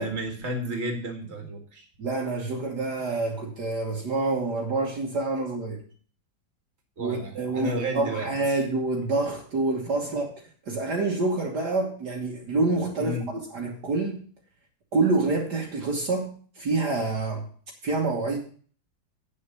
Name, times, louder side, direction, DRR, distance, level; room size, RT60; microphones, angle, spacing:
voice 1, 0.0-1.9 7.0-8.6 13.0-13.3, right 1 dB, 35° right, 3 dB, 2.3 m, -32 dB
voice 2, 2.0-5.8 7.0-10.3 10.7-14.2 14.9-17.4 17.8-18.4, right 3 dB, 60° right, 0 dB, 2.0 m, -27 dB
8.7 x 6.7 x 6.9 m, 0.44 s
omnidirectional pair, 2.1 m